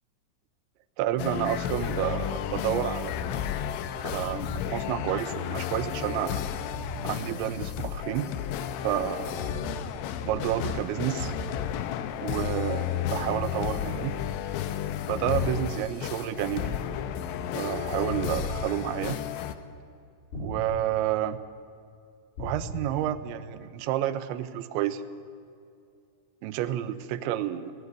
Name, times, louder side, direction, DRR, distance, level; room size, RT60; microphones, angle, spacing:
voice 1, 1.0-3.3 4.0-6.5 7.0-8.3 8.8-9.6 10.2-11.3 12.2-14.1 15.1-16.7 17.5-19.2 20.3-21.4 22.4-25.0 26.4-27.7, right 12 dB, 75° right, 10 dB, 3.0 m, -30 dB
sound 1, 1.2-19.5, left 10 dB, 85° left, 3.2 m, -32 dB
sound 2, 4.1-4.7 6.7-7.2 9.5-9.9 10.3-10.8 11.2-11.7 13.0-13.6 15.4-15.9 18.1-18.7 20.3-20.9 22.4-22.9, equal, 60° left, 7.6 m, -37 dB
18.0 x 16.0 x 9.5 m, 2.5 s
omnidirectional pair, 5.6 m